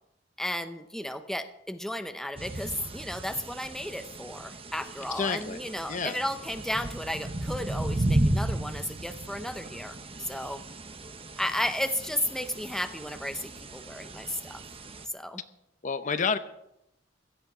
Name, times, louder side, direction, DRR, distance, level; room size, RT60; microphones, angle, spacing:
voice 1, 0.4-10.6 11.4-14.6 15.1-15.4, left 1 dB, 5° left, 9 dB, 0.8 m, -34 dB
sound 1, 2.4-15.1, right 1 dB, 30° right, 1.1 m, -34 dB
voice 2, 5.1-5.6 5.9-6.2 15.8-16.4, left 5 dB, 45° left, 11 dB, 0.7 m, -29 dB
16.5 x 13.0 x 4.9 m, 0.83 s
head